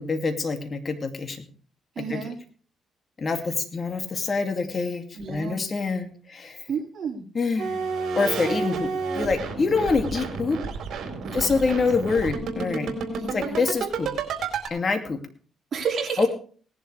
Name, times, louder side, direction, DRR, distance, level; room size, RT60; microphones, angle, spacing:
voice 1, 0.0-1.4 2.0-2.2 3.2-6.6 7.3-7.8 8.1-8.9 9.2-10.6 11.3-12.9 13.3-14.1 14.7-15.2 16.2-16.3, left 4 dB, 40° left, 5 dB, 2.5 m, -26 dB
voice 2, 1.9-2.4 5.1-5.6 6.7-7.2 8.4-8.8 11.2-11.7 13.1-13.6 15.7-16.3, right 6 dB, 50° right, -1 dB, 4.7 m, -31 dB
sound 1, 7.6-14.7, right 5 dB, 70° right, 4.0 m, -30 dB
19.0 x 11.0 x 3.4 m, 0.43 s
cardioid pair, 90°, 0 cm